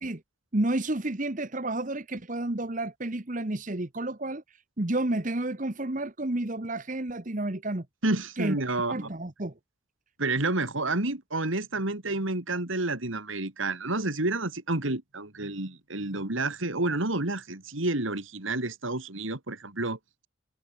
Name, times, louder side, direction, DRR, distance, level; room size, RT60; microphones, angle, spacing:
voice 1, 0.5-7.9 8.4-8.6 8.9-9.5, right 1 dB, 40° right, 1.3 m, -31 dB
voice 2, 8.0-9.1 10.2-20.0, right 2 dB, 70° right, 2.7 m, -29 dB
head